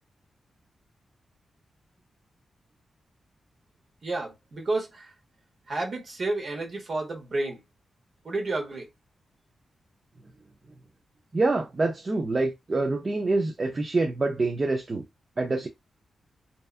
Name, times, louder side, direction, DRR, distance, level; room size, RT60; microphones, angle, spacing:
voice 1, 4.0-5.1 5.7-7.6 8.2-8.9, right 2 dB, 50° right, 1.0 m, -31 dB
voice 2, 11.3-15.0 15.4-15.7, right 3 dB, 30° right, 0.4 m, -26 dB
2.6 x 2.3 x 2.4 m
wide cardioid pair, 120°, 0 cm